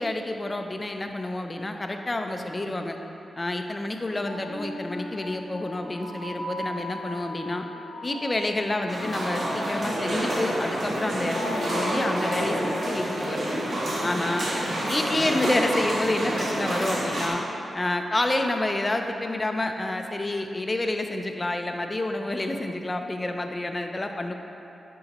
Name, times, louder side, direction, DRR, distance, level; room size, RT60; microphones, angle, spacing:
voice 1, 0.0-3.0 3.4-7.7 8.0-13.6 14.0-14.5 14.9-17.4 17.7-24.3, left 2 dB, 25° left, 4 dB, 0.5 m, -29 dB
sound 1, 4.3-15.1, left 2 dB, 60° left, 1.4 m, -39 dB
sound 2, 8.9-17.3, right 1 dB, 70° right, 1.4 m, -28 dB
9.8 x 5.2 x 3.0 m, 2.9 s
wide cardioid pair, 110°, 0 cm